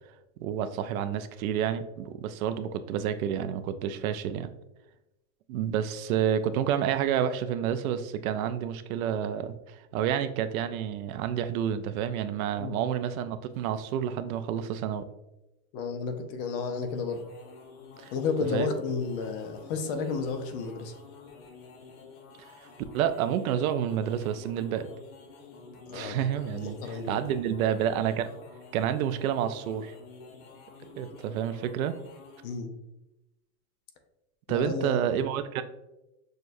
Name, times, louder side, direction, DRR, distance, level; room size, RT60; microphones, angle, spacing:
voice 1, 0.4-4.5 5.5-15.0 18.0-18.1 18.5-18.7 22.4-22.5 22.9-24.9 25.9-28.3 28.7-29.9 31.0-31.9 34.5-35.6, right 9 dB, 75° right, 11 dB, 0.5 m, -29 dB
voice 2, 15.7-17.3 18.1-20.9 25.9-26.3 26.5-27.2 32.4-32.7 34.5-35.2, left 5 dB, 40° left, 6 dB, 0.5 m, -32 dB
sound 1, 16.8-32.6, left 4 dB, 65° left, 1.1 m, -50 dB
6.3 x 2.3 x 2.5 m, 0.95 s
supercardioid pair, 150°, 43 cm